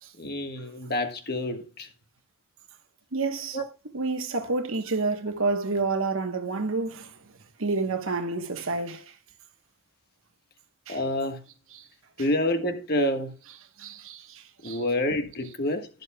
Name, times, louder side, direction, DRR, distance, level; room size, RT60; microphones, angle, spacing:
voice 1, 0.2-1.9 3.5-3.6 10.9-11.4 12.2-13.4 14.6-15.9, left 1 dB, 45° left, 1.4 m, -28 dB
voice 2, 3.1-3.6 3.9-7.3 7.6-9.1 10.9-11.0 13.8-14.8, right 3 dB, 75° right, 1.2 m, -29 dB
11.5 x 11.0 x 2.2 m
head